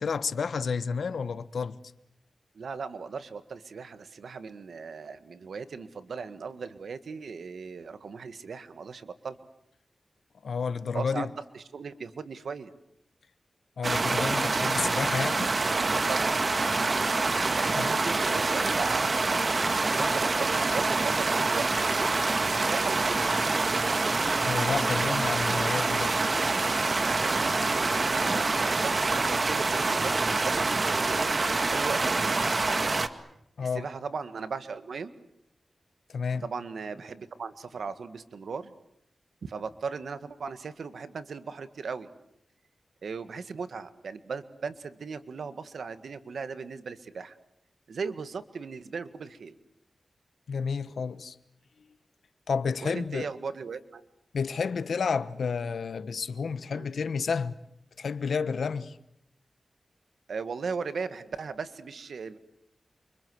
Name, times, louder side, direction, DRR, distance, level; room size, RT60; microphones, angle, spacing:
voice 1, 0.0-1.8 10.4-11.3 13.8-15.5 17.7-17.9 24.4-26.1 33.6-33.9 36.1-36.5 50.5-51.4 52.5-53.3 54.3-57.5 58.0-59.0, left 5 dB, 90° left, 1.2 m, -30 dB
voice 2, 2.6-9.4 10.9-12.7 15.9-16.4 17.5-19.0 19.3-21.7 22.4-23.3 27.0-31.3 31.7-32.5 33.6-35.1 36.4-38.7 39.4-42.1 43.0-47.4 47.9-49.5 52.8-54.0 56.7-56.9 60.3-62.4, right 5 dB, 90° right, 1.7 m, -37 dB
sound 1, 13.8-33.1, right 3 dB, 55° right, 1.9 m, -26 dB
29.0 x 25.0 x 8.0 m
cardioid pair, 50°, 0 cm